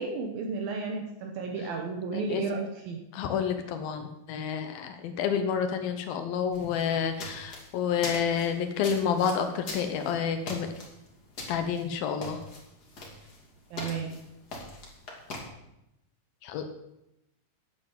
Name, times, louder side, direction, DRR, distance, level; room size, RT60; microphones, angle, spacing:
voice 1, 0.0-3.0 13.7-14.1, right 4 dB, 70° right, 2 dB, 2.3 m, -33 dB
voice 2, 2.1-2.4 3.1-10.7 11.5-12.4 16.4-16.6, left 7 dB, 75° left, 7 dB, 2.2 m, -29 dB
sound 1, 6.5-15.4, left 2 dB, 30° left, 1.8 m, -42 dB
9.6 x 9.1 x 7.6 m, 0.87 s
omnidirectional pair, 5.4 m